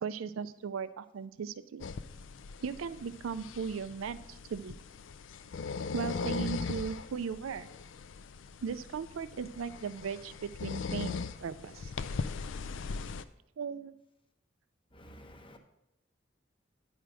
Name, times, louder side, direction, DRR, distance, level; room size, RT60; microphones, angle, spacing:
voice 1, 0.0-1.9 2.6-4.8 5.9-7.7 8.6-11.9 13.6-13.9, right 6 dB, 85° right, 14 dB, 0.4 m, -37 dB
sound 1, 1.8-13.2, left 4 dB, 65° left, 0.4 m, -39 dB
voice 2, 14.9-15.6, equal, 25° left, 5 dB, 1.0 m, -52 dB
9.8 x 5.0 x 6.2 m, 0.83 s
head